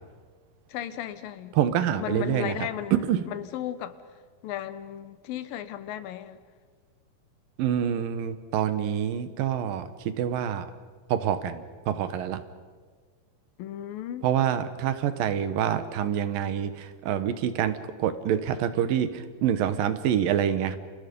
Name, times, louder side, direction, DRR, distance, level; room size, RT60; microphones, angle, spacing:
voice 1, 0.7-1.6 2.0-4.0 4.4-6.4 13.6-14.3, left 11 dB, 85° left, 2.8 m, -35 dB
voice 2, 1.6-2.6 3.1-3.3 7.6-9.9 10.2-10.7 11.1-12.4 14.2-20.8, right 9 dB, 80° right, 2.9 m, -26 dB
30.0 x 28.5 x 5.4 m
omnidirectional pair, 4.0 m